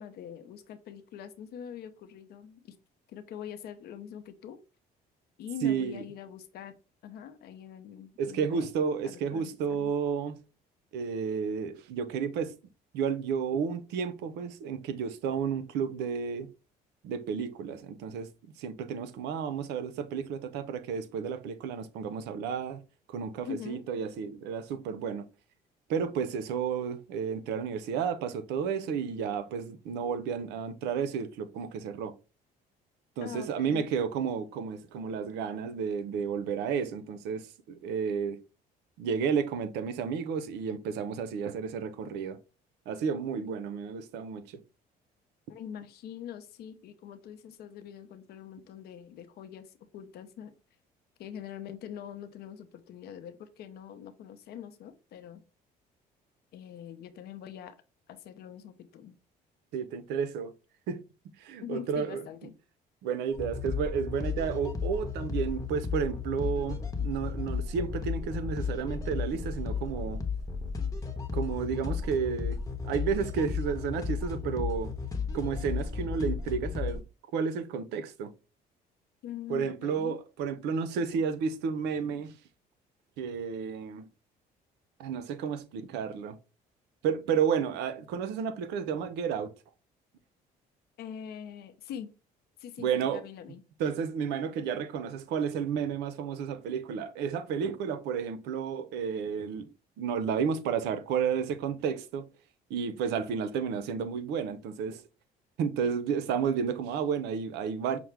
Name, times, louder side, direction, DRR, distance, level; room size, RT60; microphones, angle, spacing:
voice 1, 0.0-2.8 3.1-4.6 5.4-6.7 7.0-8.7 9.0-9.9 23.5-23.8 33.2-33.9 45.5-50.5 51.2-55.4 56.5-57.8 58.1-59.1 61.6-62.5 79.2-80.2 91.0-92.1 92.6-93.6 105.8-105.9, left 9 dB, 70° left, 0.6 m, -43 dB
voice 2, 5.6-6.0 8.2-10.4 10.9-12.5 12.9-16.5 17.0-18.3 18.6-22.8 23.1-25.3 25.9-32.1 33.2-38.4 39.0-42.4 42.9-44.6 59.7-60.5 60.9-61.0 61.4-62.3 63.0-70.2 71.3-72.6 72.8-74.9 75.3-77.0 77.3-78.3 79.5-82.4 83.2-84.1 85.0-86.4 87.0-89.5 92.8-93.2 93.8-99.7 100.0-102.3 102.7-105.0 105.6-108.0, right 6 dB, 85° right, 0.6 m, -32 dB
sound 1, 63.3-77.0, left 5 dB, 20° left, 0.9 m, -33 dB
5.8 x 2.1 x 3.3 m
cardioid pair, 110°, 17 cm